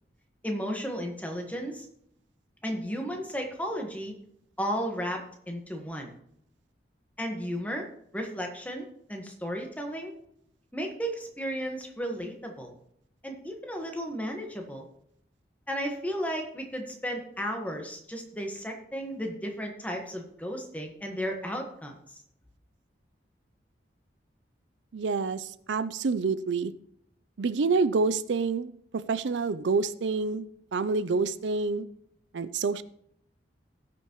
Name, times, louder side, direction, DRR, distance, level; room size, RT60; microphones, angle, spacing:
voice 1, 0.4-1.9 2.6-4.1 4.6-6.1 7.2-7.9 8.1-10.1 10.7-12.7 13.2-14.9 15.7-21.9, equal, 10° left, 2 dB, 1.3 m, -34 dB
voice 2, 24.9-26.7 27.4-31.9 32.3-32.8, right 4 dB, 80° right, 14 dB, 0.5 m, -28 dB
18.0 x 6.0 x 3.0 m, 0.72 s
head